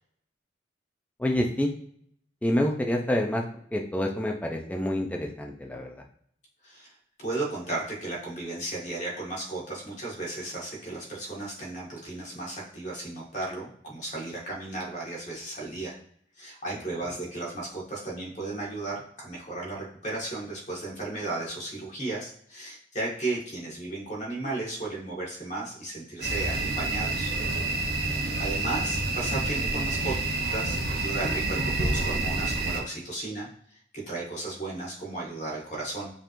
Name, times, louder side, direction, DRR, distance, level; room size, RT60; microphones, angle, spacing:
voice 1, 1.2-1.7 2.4-3.4 3.7-6.0 27.8-28.3, left 1 dB, 10° left, 2 dB, 0.4 m, -28 dB
voice 2, 7.2-15.9 16.4-27.3 28.4-30.1 30.5-36.1, right 2 dB, 40° left, -4 dB, 1.6 m, -35 dB
sound 1, 26.2-32.8, right 2 dB, 55° right, 0.7 m, -28 dB
5.3 x 3.0 x 2.6 m, 0.63 s
head